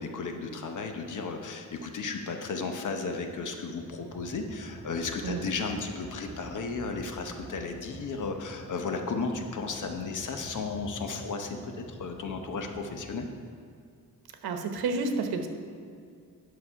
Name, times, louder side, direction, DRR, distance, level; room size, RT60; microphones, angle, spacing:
voice 1, 0.0-11.6 11.9-13.3, left 4 dB, 55° left, 5 dB, 0.9 m, -34 dB
sound 1, 3.8-13.3, right 1 dB, 30° right, 2.0 m, -47 dB
voice 2, 14.4-15.5, right 3 dB, 85° right, 6 dB, 1.0 m, -30 dB
9.8 x 6.3 x 5.6 m, 2.3 s
wide cardioid pair, 165°, 36 cm